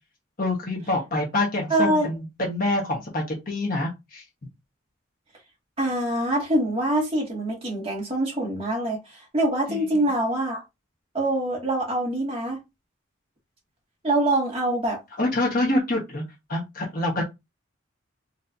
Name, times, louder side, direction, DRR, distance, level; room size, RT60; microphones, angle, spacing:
voice 1, 0.4-4.2 9.7-10.1 15.2-16.2 16.5-17.2, left 2 dB, 45° left, 1.3 m, -26 dB
voice 2, 1.7-2.1 5.8-9.0 9.3-10.6 11.1-12.6 14.0-15.0, right 1 dB, 30° right, 2.1 m, -24 dB
4.3 x 3.1 x 2.7 m
head